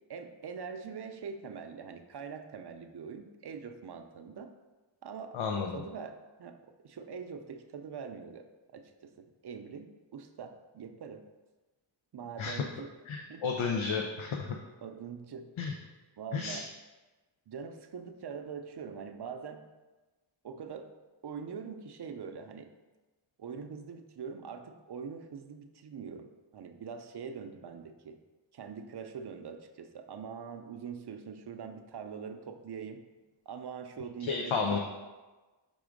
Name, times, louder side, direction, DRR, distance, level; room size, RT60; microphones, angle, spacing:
voice 1, 0.1-4.5 5.0-8.4 8.7-11.3 12.1-12.9 13.3-13.9 14.8-15.5 16.2-16.7 17.5-19.7 20.4-20.9 21.2-22.7 23.4-28.2 28.5-33.0 33.5-34.8, right 6 dB, 55° right, 7 dB, 0.6 m, -43 dB
voice 2, 5.3-5.7 12.4-12.5 13.1-14.5 15.6-15.7 16.3-16.6 34.2-34.8, left 5 dB, 85° left, 2 dB, 0.7 m, -32 dB
6.1 x 3.6 x 5.0 m, 1.2 s
wide cardioid pair, 105°, 46 cm